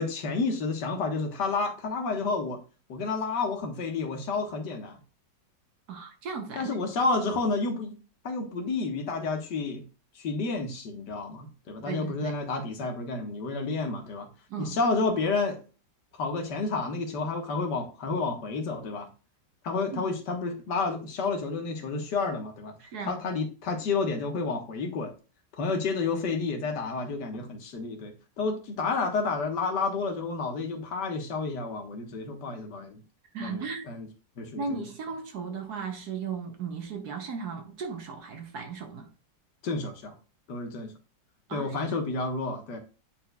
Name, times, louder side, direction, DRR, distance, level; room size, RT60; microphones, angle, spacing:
voice 1, 0.0-2.6 2.9-5.0 6.6-7.9 8.2-9.8 10.2-14.3 14.6-15.6 16.2-19.1 19.6-22.7 23.1-25.1 25.6-33.0 33.4-34.1 34.4-34.8 39.6-40.1 40.5-40.9 41.5-42.8, left 4 dB, 70° left, 1.8 m, -30 dB
voice 2, 5.9-6.9 11.9-12.4 14.5-14.8 19.9-20.1 22.8-23.2 33.3-33.8 34.6-39.1 41.5-42.0, right 5 dB, 65° right, 1.4 m, -36 dB
9.4 x 4.6 x 2.3 m
omnidirectional pair, 2.0 m